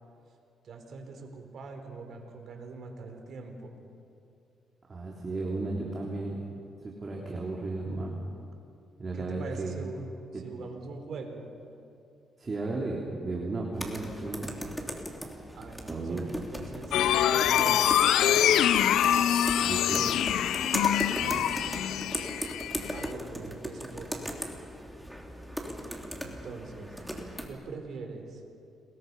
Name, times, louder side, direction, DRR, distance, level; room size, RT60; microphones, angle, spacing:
voice 1, 0.6-3.7 9.1-10.0 10.3-11.5 15.5-18.5 22.9-24.1 26.2-27.0 27.5-28.4, right 4 dB, 65° right, 4 dB, 4.1 m, -42 dB
voice 2, 4.9-6.4 6.8-8.2 9.0-9.7 10.3-10.4 12.4-14.7 15.9-16.3 19.6-20.2 21.2-21.5, right 3 dB, 35° right, -2 dB, 3.4 m, -34 dB
sound 1, 13.7-27.5, equal, ahead, 3.2 m, -38 dB
sound 2, 16.9-23.1, left 10 dB, 80° left, 0.6 m, -25 dB
29.5 x 21.5 x 5.5 m, 2.6 s
cardioid pair, 90°, 0 cm